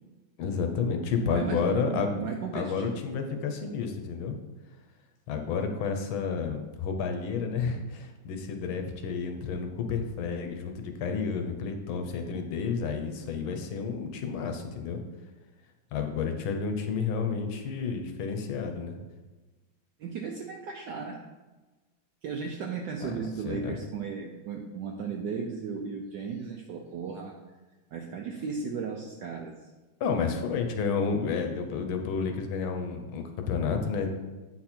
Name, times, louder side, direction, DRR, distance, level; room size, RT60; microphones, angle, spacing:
voice 1, 0.4-4.3 5.3-15.0 15.9-19.0 23.0-23.2 23.5-23.8 30.0-34.2, left 5 dB, 70° left, 5 dB, 1.5 m, -31 dB
voice 2, 1.2-3.0 20.0-21.2 22.2-27.3 27.9-29.6, right 5 dB, 75° right, 3 dB, 1.0 m, -35 dB
8.2 x 4.2 x 4.3 m, 1.2 s
omnidirectional pair, 2.4 m